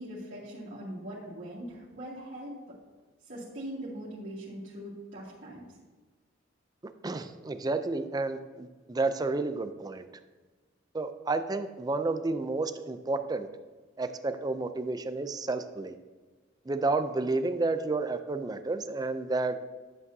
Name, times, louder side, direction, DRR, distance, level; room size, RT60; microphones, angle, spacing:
voice 1, 0.0-2.5 3.3-5.6, right 1 dB, 65° right, -11 dB, 2.3 m, -41 dB
voice 2, 7.0-10.0 10.9-13.5 14.0-15.9 16.7-19.6, right 3 dB, 20° right, 9 dB, 0.4 m, -31 dB
11.0 x 7.7 x 2.7 m, 1.3 s
head